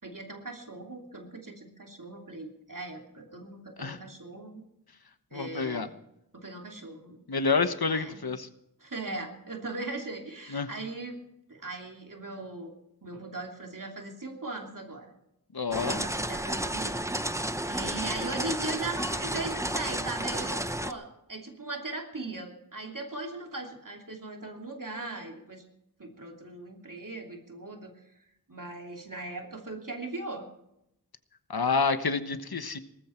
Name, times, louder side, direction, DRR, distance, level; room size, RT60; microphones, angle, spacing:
voice 1, 0.0-4.6 5.3-6.0 6.3-7.2 7.9-8.2 8.8-11.2 11.5-12.7 13.0-15.1 15.8-17.2 17.7-25.6 26.0-27.9 28.5-30.5, right 2 dB, 60° right, 2 dB, 2.9 m, -39 dB
voice 2, 5.3-5.9 7.3-8.5 10.5-10.7 15.5-16.0 31.5-32.8, left 4 dB, 80° left, 10 dB, 1.2 m, -28 dB
sound 1, 15.7-20.9, right 1 dB, 10° right, 0.9 m, -32 dB
18.5 x 14.5 x 4.5 m, 0.82 s
wide cardioid pair, 50°, 37 cm